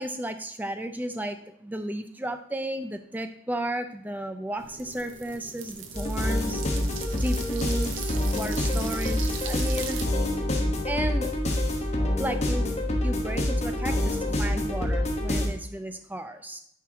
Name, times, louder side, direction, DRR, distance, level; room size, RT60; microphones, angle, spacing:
voice 1, 0.0-6.6 7.2-10.0 10.8-11.3 11.8-11.9 12.2-12.7 13.0-16.6, right 1 dB, 10° right, 8 dB, 0.4 m, -33 dB
sound 1, 4.6-10.1, right 6 dB, 70° right, 0.7 m, -39 dB
sound 2, 5.9-15.5, left 1 dB, 30° left, 1.2 m, -27 dB
9.2 x 4.6 x 3.7 m, 0.71 s
head